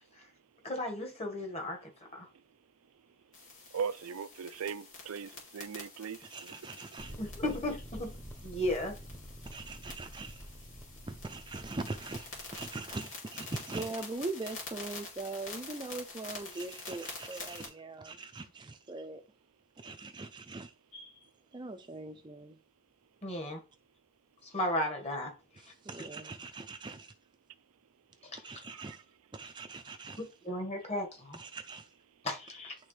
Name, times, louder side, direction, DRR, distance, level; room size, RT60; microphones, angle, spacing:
voice 1, 0.6-2.3 7.2-8.1 8.4-8.9 20.9-21.1 23.2-23.6 24.4-25.3 28.2-28.4 30.2-31.4 32.2-32.8, left 1 dB, 30° left, 1.6 m, -35 dB
sound 1, 3.3-17.7, left 3 dB, 75° left, 2.6 m, -47 dB
voice 2, 3.7-6.6 28.7-29.0, right 6 dB, 80° right, 0.4 m, -39 dB
voice 3, 6.2-7.2 9.4-10.5 11.1-19.2 19.8-20.7 21.5-22.6 25.6-27.1 28.4-29.0 29.3-30.2 31.3-31.9, right 3 dB, 20° right, 0.5 m, -41 dB
sound 2, 7.0-12.9, equal, 10° left, 0.9 m, -48 dB
10.5 x 3.6 x 3.3 m
head